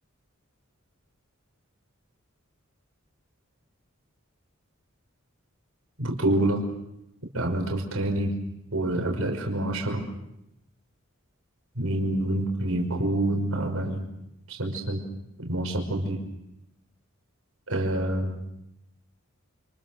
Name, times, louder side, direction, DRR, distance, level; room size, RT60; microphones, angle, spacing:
voice 1, 6.0-6.6 7.3-8.3 8.7-10.1 11.8-14.1 14.5-15.0 15.4-16.2 17.7-18.4, right 1 dB, 85° right, 2 dB, 5.6 m, -27 dB
29.5 x 28.5 x 6.6 m, 0.84 s
head